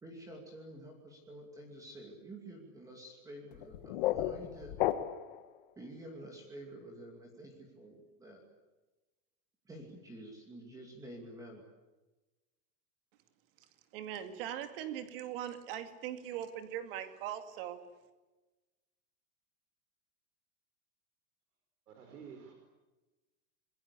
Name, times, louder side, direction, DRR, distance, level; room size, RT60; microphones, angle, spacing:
voice 1, 0.0-4.8 5.8-8.4 9.6-11.6, right 1 dB, 5° right, 2 dB, 2.6 m, -49 dB
sound 1, 3.5-5.4, left 13 dB, 35° left, 1.3 m, -33 dB
voice 2, 13.9-17.8, right 10 dB, 35° right, 8 dB, 2.5 m, -40 dB
voice 3, 21.9-22.5, right 6 dB, 75° right, 5 dB, 5.3 m, -50 dB
25.5 x 22.5 x 8.5 m, 1.1 s
supercardioid pair, 180°, 45 cm